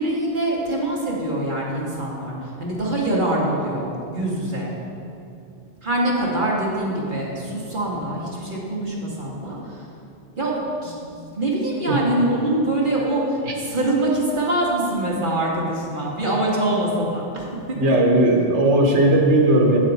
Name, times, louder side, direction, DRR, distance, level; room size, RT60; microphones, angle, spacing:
voice 1, 0.0-4.7 5.8-9.8 10.4-10.5 10.8-17.4 17.9-18.0, right 1 dB, 45° right, -4 dB, 1.7 m, -24 dB
voice 2, 17.8-19.8, right 1 dB, 70° right, 0 dB, 1.5 m, -17 dB
8.4 x 8.2 x 4.1 m, 2.6 s
omnidirectional pair, 1.2 m